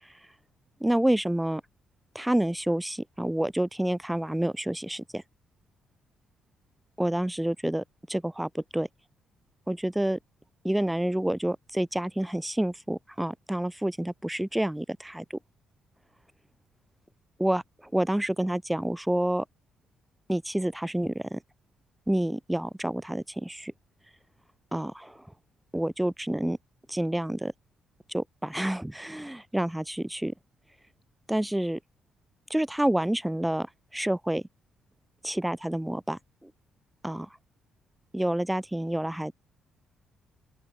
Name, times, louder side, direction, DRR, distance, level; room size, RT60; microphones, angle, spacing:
voice 1, 0.8-1.6 2.1-5.2 7.0-7.8 8.1-8.9 9.7-10.2 10.6-15.4 17.4-17.6 17.9-19.4 20.3-21.4 22.1-23.7 24.7-25.2 25.7-26.6 26.9-27.5 28.1-30.3 31.3-31.8 32.5-33.7 33.9-34.4 35.2-36.5 37.0-37.3 38.1-39.3, right 1 dB, 5° right, 2.0 m, -28 dB
open air
cardioid pair, 150°, 0 cm